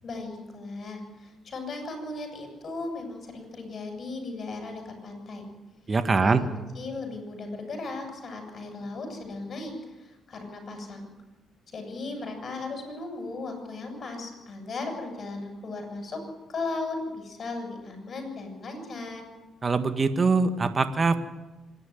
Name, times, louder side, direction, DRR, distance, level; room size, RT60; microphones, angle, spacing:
voice 1, 0.0-5.5 6.1-6.5 6.8-11.1 11.7-16.2 16.5-19.2, left 3 dB, 50° left, 4 dB, 7.3 m, -36 dB
voice 2, 5.9-6.4 19.6-21.2, right 4 dB, 35° right, 9 dB, 1.7 m, -23 dB
25.5 x 11.0 x 9.4 m, 1.1 s
cardioid pair, 85°, 0 cm